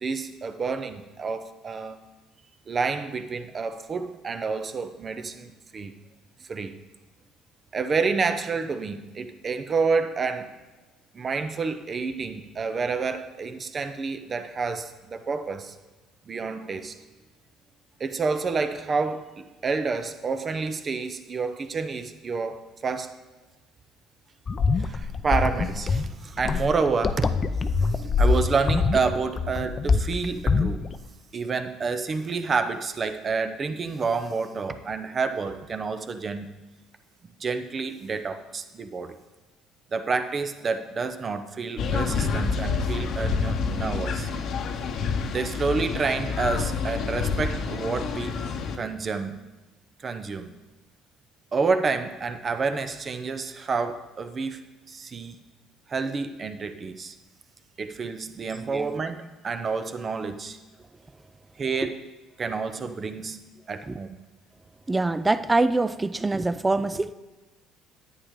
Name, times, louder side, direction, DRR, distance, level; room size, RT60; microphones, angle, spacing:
voice 1, 0.0-2.0 2.7-5.9 6.5-6.7 7.7-10.5 11.1-15.7 16.3-17.0 18.0-23.1 24.7-27.3 27.8-30.8 31.3-36.5 37.4-39.1 39.9-44.3 45.3-48.3 48.8-49.4 50.0-50.5 51.5-54.6 54.9-55.4 55.9-57.1 57.8-60.6 61.6-62.0 62.4-63.4 63.7-64.2, right 4 dB, 40° right, 10 dB, 0.8 m, -29 dB
sound 1, 24.5-31.0, left 4 dB, 35° left, 0.5 m, -24 dB
sound 2, 41.8-48.8, left 5 dB, 60° left, 0.8 m, -28 dB
voice 2, 64.9-67.1, right 2 dB, 20° right, 14 dB, 0.4 m, -24 dB
9.8 x 8.4 x 3.7 m, 1.2 s
supercardioid pair, 70°, 0 cm